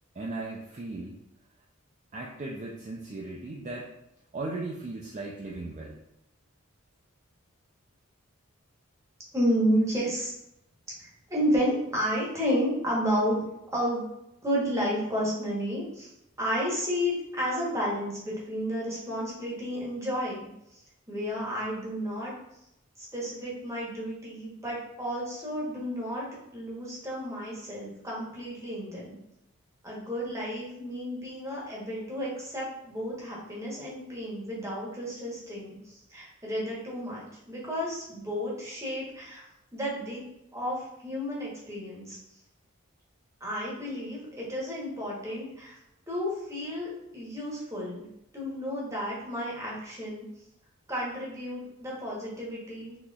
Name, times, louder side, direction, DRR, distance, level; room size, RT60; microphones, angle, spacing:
voice 1, 0.2-1.2 2.1-3.9 4.3-6.0, right 2 dB, 35° right, -3 dB, 0.3 m, -37 dB
voice 2, 9.3-10.3 11.0-13.4 13.7-14.1 14.4-16.1 16.4-20.5 20.7-20.8 21.1-22.3 23.0-26.3 26.5-29.2 29.8-39.4 39.7-40.2 40.5-42.2 43.4-45.7 46.1-48.1 48.3-50.3 50.9-53.0, equal, 15° right, -5 dB, 0.9 m, -31 dB
3.9 x 2.9 x 2.3 m, 0.84 s
head